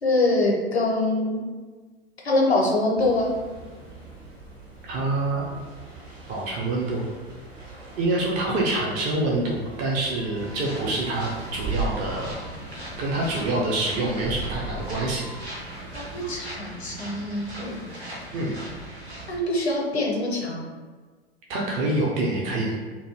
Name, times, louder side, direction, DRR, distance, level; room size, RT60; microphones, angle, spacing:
voice 1, 0.0-1.4 2.2-3.3 15.9-17.8 19.3-20.7, left 2 dB, 85° left, -1 dB, 0.6 m, -24 dB
sound 1, 3.0-16.4, right 3 dB, 50° right, 1.4 m, -39 dB
voice 2, 4.8-5.6 6.3-7.0 8.0-12.4 13.0-15.3 18.3-18.5 21.5-22.8, right 2 dB, 25° right, -3 dB, 0.4 m, -26 dB
sound 2, 10.4-19.4, right 1 dB, 80° right, 0.8 m, -39 dB
2.5 x 2.2 x 3.0 m, 1.4 s
figure-of-eight pair, 85°, 32 cm